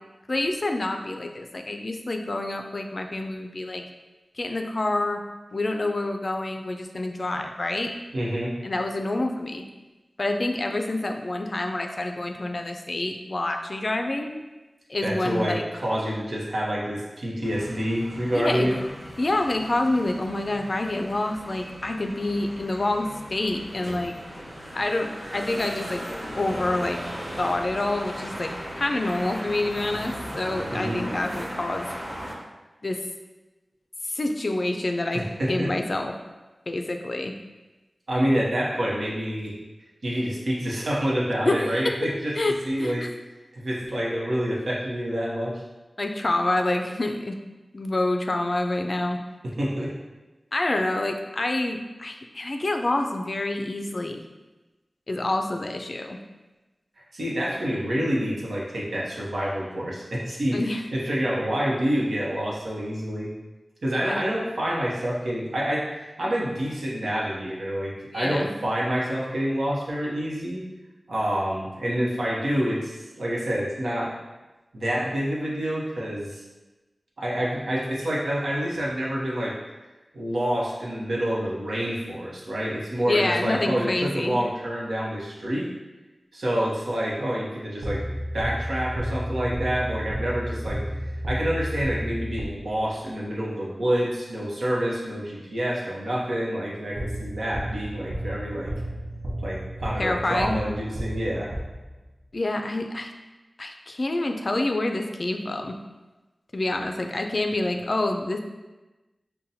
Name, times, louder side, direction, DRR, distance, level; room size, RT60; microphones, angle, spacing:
voice 1, 0.3-3.8 4.4-5.2 5.5-7.9 8.6-9.6 10.2-14.4 14.9-15.6 18.3-18.7 19.2-24.1 24.7-26.0 26.3-27.0 27.4-31.9 32.8-33.0 34.0-35.2 35.5-36.1 36.7-37.3 41.4-41.9 42.4-43.1 46.0-47.4 47.7-49.2 50.5-54.2 55.1-56.2 60.5-60.8 64.0-64.2 68.1-68.5 83.0-84.3 100.0-100.6 102.3-103.1 103.6-105.7 106.5-108.4, left 2 dB, 50° left, 4 dB, 0.3 m, -27 dB
voice 2, 8.1-8.5 15.0-18.8 30.7-31.1 35.1-35.7 38.1-39.5 40.0-42.3 42.7-43.1 43.5-45.6 49.4-49.9 57.1-63.3 63.8-65.9 66.2-70.7 71.1-74.1 74.7-76.4 77.2-79.6 80.1-85.7 86.3-88.0 88.3-90.8 91.3-98.7 99.4-101.5, equal, 85° right, -5 dB, 0.8 m, -27 dB
sound 1, 17.4-32.3, equal, 35° right, 1.3 m, -37 dB
sound 2, 87.8-92.9 97.0-102.2, equal, 60° right, 0.5 m, -32 dB
5.6 x 2.2 x 2.7 m, 1.1 s
wide cardioid pair, 75°, 0 cm